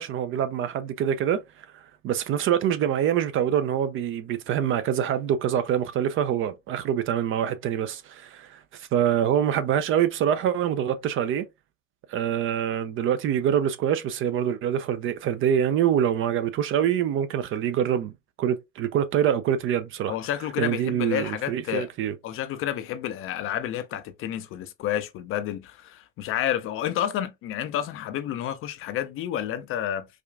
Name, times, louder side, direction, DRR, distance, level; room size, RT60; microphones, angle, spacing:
voice 1, 0.0-1.7 2.0-11.5 12.1-18.1 18.4-20.1 20.6-22.1, right 9 dB, 35° right, 0.4 m, -25 dB
voice 2, 20.1-21.9 22.2-30.1, left 11 dB, 35° left, 0.4 m, -30 dB
4.9 x 2.3 x 2.3 m
hypercardioid pair, 100°, 40 cm